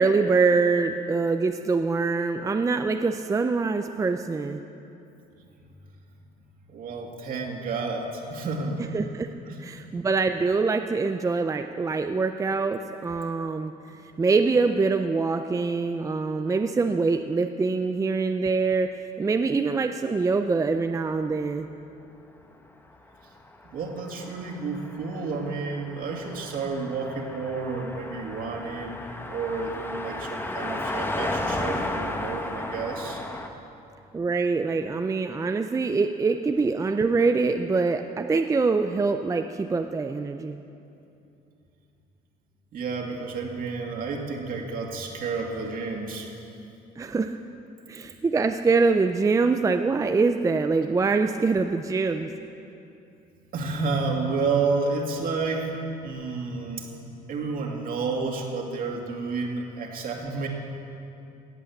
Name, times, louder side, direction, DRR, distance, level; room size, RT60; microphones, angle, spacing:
voice 1, 0.0-4.6 8.9-9.3 9.6-13.7 14.2-21.7 34.1-40.6 47.0-47.4 47.9-52.3, right 4 dB, 20° right, 6 dB, 0.5 m, -24 dB
voice 2, 6.7-8.8 9.5-9.6 23.7-29.0 29.3-33.2 42.7-46.3 53.5-57.0 57.3-60.5, right 4 dB, 55° right, 1 dB, 2.3 m, -30 dB
Car passing by, 23.4-33.5, left 1 dB, 15° left, 1.0 m, -34 dB
17.0 x 8.3 x 7.2 m, 2.7 s
cardioid pair, 110°, 17 cm